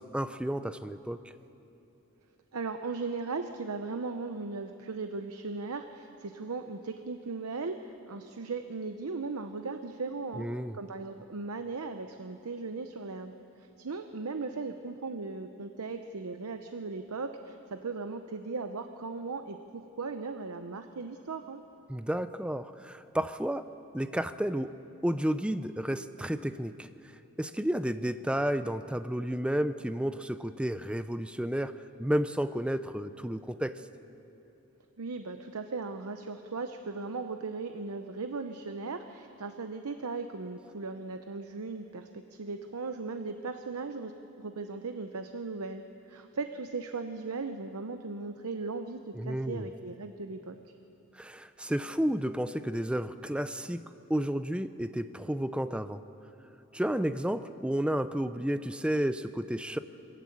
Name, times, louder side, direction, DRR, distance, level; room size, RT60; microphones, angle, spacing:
voice 1, 0.0-1.3 10.3-10.8 21.9-23.7 23.9-24.7 25.0-26.9 27.4-33.7 49.1-49.7 51.1-53.8 54.1-56.0 56.7-59.8, equal, 5° right, 12 dB, 0.5 m, -31 dB
voice 2, 2.5-10.5 10.7-21.6 35.0-45.8 46.1-50.6, right 4 dB, 85° right, 7 dB, 0.7 m, -37 dB
22.5 x 14.5 x 8.6 m, 3.0 s
head